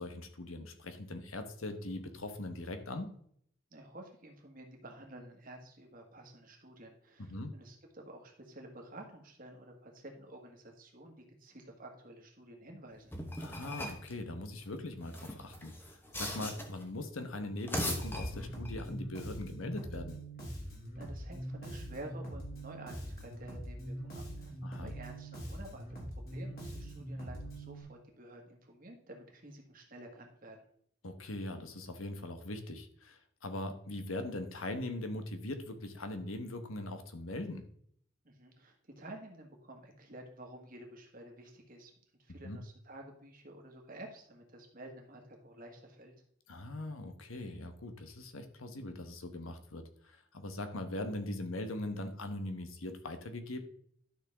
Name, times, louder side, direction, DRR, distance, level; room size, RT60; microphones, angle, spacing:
voice 1, 0.0-3.2 7.2-7.5 13.4-20.2 24.6-24.9 31.0-37.6 42.3-42.6 46.5-53.6, left 1 dB, 80° left, 8 dB, 1.2 m, -41 dB
voice 2, 3.7-13.1 20.6-24.5 24.8-30.6 38.2-41.9 42.2-46.1, right 1 dB, 40° right, 2 dB, 1.6 m, -51 dB
sound 1, 13.1-14.1 15.0-16.8 17.5-18.8, left 1 dB, 10° left, 1.1 m, -39 dB
Bass guitar, 17.9-27.8, right 1 dB, 45° left, 2.9 m, -43 dB
11.5 x 6.2 x 3.6 m, 0.64 s
head